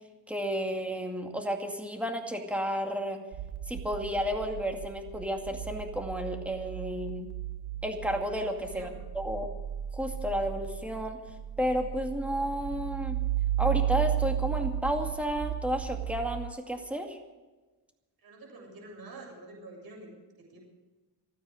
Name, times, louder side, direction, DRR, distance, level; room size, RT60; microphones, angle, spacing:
voice 1, 0.3-3.2 3.7-7.3 7.8-8.9 9.1-9.5 9.9-11.2 11.6-13.2 13.6-17.2, equal, 5° right, 3 dB, 2.2 m, -32 dB
sound 1, 3.3-16.5, right 11 dB, 80° right, 1.4 m, -34 dB
voice 2, 8.3-9.0 18.2-20.6, right 2 dB, 60° right, 0 dB, 6.9 m, -48 dB
28.0 x 9.4 x 5.0 m, 1.2 s
wide cardioid pair, 130°, 41 cm